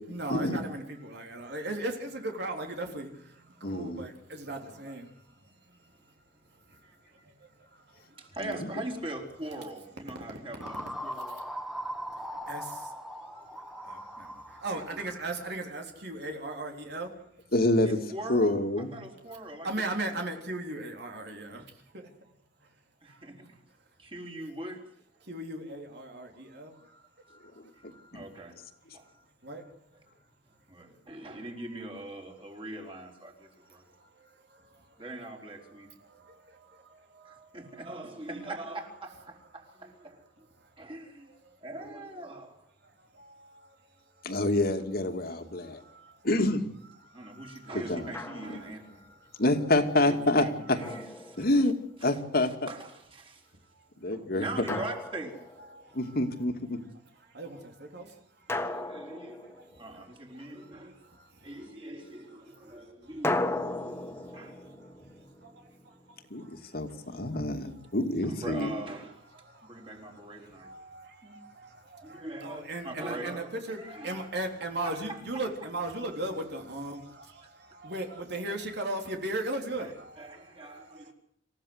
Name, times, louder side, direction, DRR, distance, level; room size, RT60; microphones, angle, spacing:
voice 1, 0.1-6.1 6.5-8.4 11.4-11.5 12.5-13.0 13.2-17.2 19.6-22.3 22.6-22.7 23.1-23.5 25.2-28.1 29.0-29.7 33.9-35.1 35.6-38.0 40.6-40.7 41.3-41.6 42.8-44.3 45.3-46.3 47.0-47.8 48.0-49.4 50.9-51.0 53.7-53.9 55.6-56.2 57.1-61.7 62.6-63.1 63.7-67.9 69.3-81.1, right 2 dB, 65° right, 3.6 m, -40 dB
voice 2, 3.6-4.0 17.5-18.0 18.3-18.9 28.1-28.3 44.2-45.8 46.2-46.6 47.9-48.1 49.4-50.5 51.4-51.7 52.0-52.5 54.0-54.5 55.9-56.8 66.3-68.7, left 1 dB, 60° left, 2.5 m, -27 dB
voice 3, 8.2-11.3 14.7-14.8 17.8-19.9 23.0-23.4 24.0-24.8 28.1-28.6 28.9-29.1 30.7-33.9 35.0-35.9 37.2-40.5 40.8-41.3 41.6-42.6 45.3-45.4 47.1-49.0 50.0-51.3 52.0-53.5 54.1-55.4 58.5-59.4 59.8-61.0 61.4-64.6 68.3-69.3 69.6-70.7 71.2-71.4 72.0-74.3 74.8-75.4 79.8-81.1, right 1 dB, 30° right, 4.6 m, -42 dB
sound 1, 10.6-15.7, equal, ahead, 2.0 m, -40 dB
Drum, 48.1-48.8 50.8-51.9 54.7-55.8 58.5-60.1 63.2-66.2, left 2 dB, 15° left, 1.5 m, -36 dB
27.5 x 15.5 x 8.1 m
head